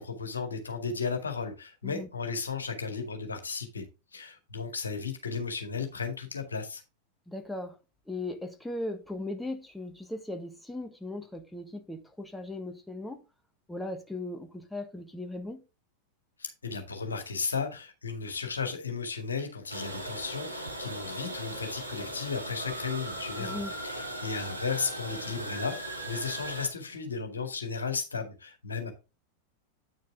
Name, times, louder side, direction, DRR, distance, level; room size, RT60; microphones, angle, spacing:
voice 1, 0.0-3.8 4.1-6.8 16.4-23.6 23.8-28.9, left 5 dB, 75° left, 2.0 m, -34 dB
voice 2, 7.3-7.8 8.1-13.2 13.7-15.6 23.4-23.7, left 2 dB, 5° left, 1.4 m, -38 dB
sound 1, 19.7-26.7, right 1 dB, 85° right, 2.3 m, -38 dB
9.0 x 6.5 x 3.7 m
figure-of-eight pair, 90°, 0 cm